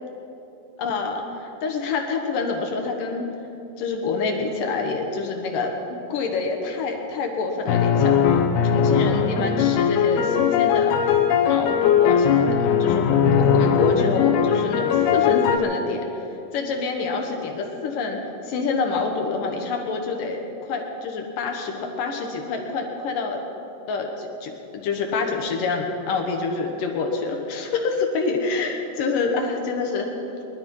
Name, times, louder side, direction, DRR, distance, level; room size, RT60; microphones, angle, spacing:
voice 1, 0.8-3.3 3.8-10.9 11.4-16.0 16.5-23.4 23.9-24.5 24.8-30.1, left 4 dB, 70° left, 2 dB, 2.7 m, -27 dB
sound 1, 7.7-15.6, left 7 dB, 90° left, 3.0 m, -19 dB
21.5 x 12.5 x 5.5 m, 3.0 s
omnidirectional pair, 4.3 m